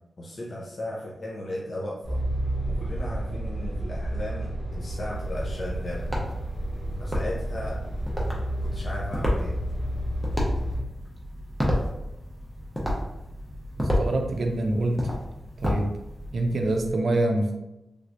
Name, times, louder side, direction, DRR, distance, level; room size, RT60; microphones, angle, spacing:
voice 1, 0.2-2.2 2.6-6.1 7.0-7.8 8.6-9.5, left 1 dB, 45° left, -4 dB, 0.5 m, -36 dB
sound 1, 2.0-10.8, right 1 dB, 80° left, 1.0 m, -31 dB
sound 2, 5.1-16.9, left 1 dB, ahead, 0.6 m, -31 dB
voice 2, 13.8-15.0 15.6-15.9 16.3-17.5, right 2 dB, 55° right, 3 dB, 0.5 m, -25 dB
3.3 x 3.0 x 2.5 m, 0.92 s
wide cardioid pair, 170°, 0 cm